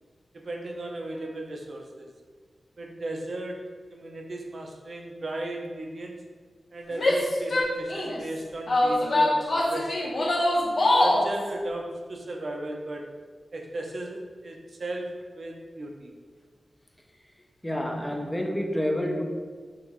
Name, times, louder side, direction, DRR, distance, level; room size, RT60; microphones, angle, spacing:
voice 1, 0.3-2.1 2.8-6.2 6.7-10.1 11.0-13.2 13.5-16.1, right 1 dB, 55° right, 2 dB, 0.6 m, -36 dB
Female speech woman speaking / Yell, 6.9-8.2 8.7-11.3, left 1 dB, 60° left, 0.8 m, -23 dB
voice 2, 17.6-19.2, equal, 10° left, 2 dB, 0.5 m, -28 dB
5.8 x 2.9 x 3.0 m, 1.5 s
wide cardioid pair, 90°, 0 cm